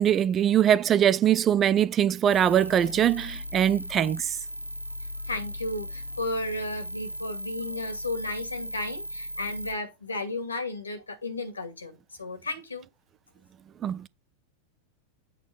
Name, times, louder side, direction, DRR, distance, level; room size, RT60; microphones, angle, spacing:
voice 1, 0.0-4.3 13.8-14.1, right 10 dB, 25° right, 0.5 m, -22 dB
sound 1, 2.3-9.7, equal, 85° right, 0.7 m, -37 dB
voice 2, 5.2-12.9, left 2 dB, 75° left, 2.3 m, -34 dB
8.5 x 4.0 x 5.3 m
figure-of-eight pair, 90°, 0 cm